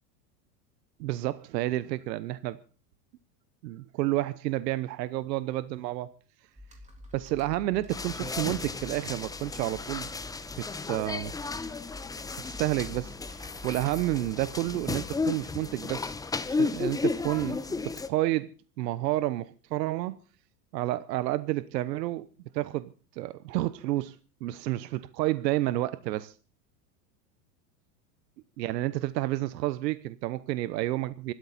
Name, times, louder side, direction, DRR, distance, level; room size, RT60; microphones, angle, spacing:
voice 1, 1.0-2.6 3.6-6.1 7.1-10.1 10.6-11.3 12.5-16.1 16.5-18.5 18.8-20.2 20.7-22.3 22.5-24.2 24.4-26.3 28.6-31.3, right 16 dB, 80° right, 1.0 m, -30 dB
Computer keyboard, 6.5-15.1, left 2 dB, 15° right, 3.5 m, -48 dB
sound 1, 7.9-18.1, left 4 dB, 5° left, 0.8 m, -34 dB
25.0 x 13.0 x 4.2 m
supercardioid pair, 130°, 49 cm